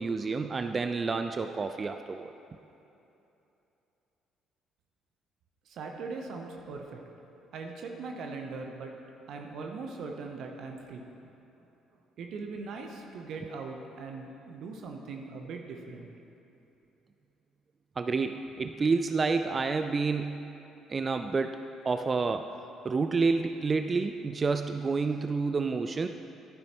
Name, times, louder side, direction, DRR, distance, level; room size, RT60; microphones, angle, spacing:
voice 1, 0.0-2.3 18.0-20.4 20.9-22.5 22.8-26.1, right 4 dB, 35° right, 8 dB, 0.4 m, -29 dB
voice 2, 5.7-7.0 7.5-8.9 9.3-11.3 12.2-16.1, right 4 dB, 60° right, 2 dB, 0.8 m, -40 dB
11.5 x 10.5 x 3.0 m, 2.9 s
hypercardioid pair, 50°, 0 cm